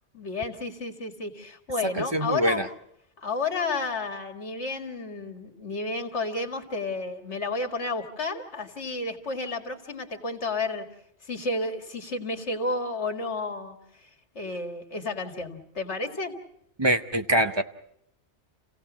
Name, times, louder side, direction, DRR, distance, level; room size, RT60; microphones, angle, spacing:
voice 1, 0.1-2.6 3.2-10.9 11.2-13.8 14.0-14.1 14.3-16.3, left 3 dB, 70° left, 5 dB, 2.2 m, -31 dB
voice 2, 2.0-2.7 16.8-17.6, right 1 dB, 25° right, 8 dB, 0.7 m, -24 dB
29.0 x 16.5 x 6.1 m, 0.72 s
omnidirectional pair, 1.2 m